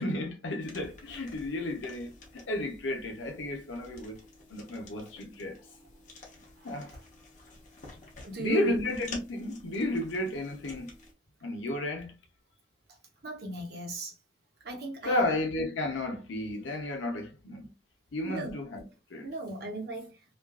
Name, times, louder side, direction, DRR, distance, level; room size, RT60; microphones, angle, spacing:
voice 1, 0.0-4.2 4.5-5.6 6.6-6.9 8.4-10.9 11.4-12.1 15.0-17.7 18.1-18.8 19.1-19.3, left 2 dB, 90° left, 0.7 m, -33 dB
sound 1, 0.6-11.1, left 2 dB, 40° left, 0.7 m, -50 dB
voice 2, 6.6-7.0 8.2-8.7 13.2-14.2 14.6-15.3 18.2-18.6 19.2-20.1, right 2 dB, 55° right, 0.9 m, -35 dB
2.5 x 2.3 x 2.2 m
head